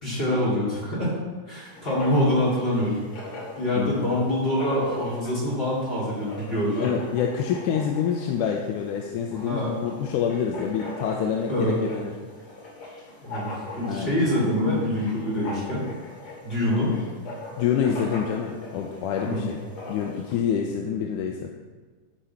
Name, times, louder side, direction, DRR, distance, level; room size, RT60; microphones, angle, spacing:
voice 1, 0.0-1.2 1.5-2.9 3.6-6.9 9.3-9.7 11.5-11.8 13.2-15.8 16.4-16.9 19.2-19.4, left 1 dB, 15° left, -7 dB, 3.2 m, -25 dB
Writing, 1.6-20.3, left 2 dB, 45° left, 3.4 m, -41 dB
voice 2, 3.8-4.1 6.8-12.1 13.9-14.1 17.6-19.6 19.9-21.5, left 7 dB, 80° left, 2 dB, 2.1 m, -27 dB
12.0 x 5.1 x 5.8 m, 1.4 s
omnidirectional pair, 3.7 m